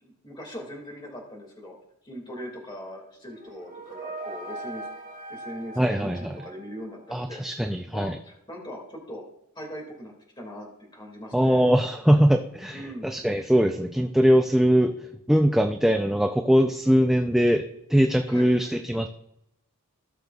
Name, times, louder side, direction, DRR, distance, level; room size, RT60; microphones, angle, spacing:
voice 1, 0.0-1.7 2.0-4.9 5.3-9.2 9.6-11.6 12.7-13.1 18.3-18.5, equal, 20° left, -1 dB, 2.0 m, -40 dB
sound 1, 3.2-7.1, right 2 dB, 45° right, 3.6 m, -40 dB
voice 2, 5.8-6.4 7.1-8.2 11.3-14.9 15.3-17.6 17.9-19.1, equal, ahead, 5 dB, 0.3 m, -21 dB
17.0 x 6.6 x 2.3 m, 0.81 s
head